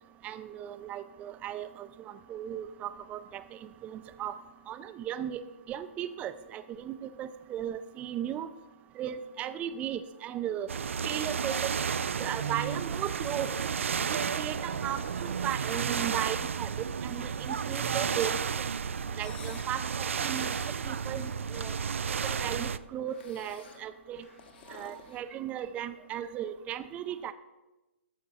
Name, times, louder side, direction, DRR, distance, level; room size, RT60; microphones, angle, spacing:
voice 1, 0.2-3.4 3.8-4.4 4.7-5.4 5.7-8.5 9.0-10.7 11.0-11.7 12.2-13.5 14.1-16.7 17.0-18.4 19.2-20.5 20.8-21.7 22.2-24.2 24.7-27.3, right 10 dB, 20° right, 13 dB, 0.5 m, -36 dB
sound 1, 10.7-22.8, right 6 dB, 70° right, 0.4 m, -32 dB
sound 2, 19.1-19.7 20.1-20.8 21.6-22.8 23.1-23.8 24.2-25.8, left 7 dB, 45° left, 1.5 m, -52 dB
sound 3, 20.5-25.0, left 3 dB, 75° left, 4.1 m, -56 dB
13.5 x 5.8 x 5.5 m, 1.1 s
figure-of-eight pair, 130°, 7 cm